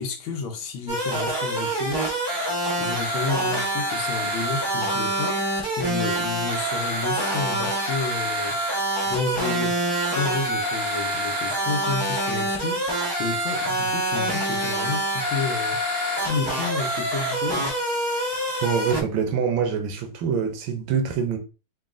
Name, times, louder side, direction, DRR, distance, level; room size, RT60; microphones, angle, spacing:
voice 1, 0.0-2.0 2.8-8.6 9.0-12.8 13.2-17.8, left 4 dB, 75° left, 1.5 m, -31 dB
sound 1, 0.9-19.0, right 1 dB, 30° right, 0.4 m, -26 dB
voice 2, 18.6-21.4, right 6 dB, 75° right, 1.3 m, -25 dB
4.0 x 2.3 x 3.6 m
omnidirectional pair, 2.3 m